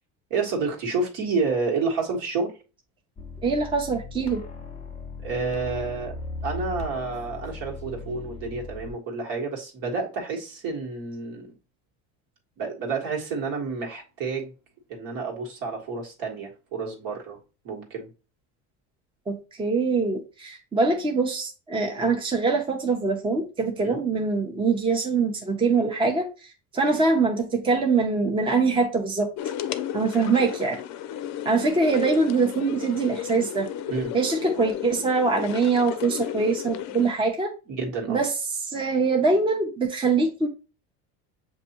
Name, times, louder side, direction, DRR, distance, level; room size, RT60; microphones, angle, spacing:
voice 1, 0.3-2.5 5.2-6.1 6.4-11.5 12.6-14.5 14.9-17.4 17.6-18.1 22.0-22.1 23.8-24.0 33.9-34.1 37.7-38.2, right 4 dB, 65° right, 1.6 m, -29 dB
sound 1, 3.2-8.9, left 3 dB, 15° left, 1.1 m, -38 dB
voice 2, 3.4-4.4 19.3-26.3 26.7-29.3 29.9-30.8 31.4-33.7 34.1-37.5 38.1-38.3 38.7-40.5, right 4 dB, 15° right, 0.7 m, -23 dB
sound 2, 29.4-37.1, left 11 dB, 50° left, 0.5 m, -34 dB
6.7 x 2.7 x 2.9 m
supercardioid pair, 115°, 35 cm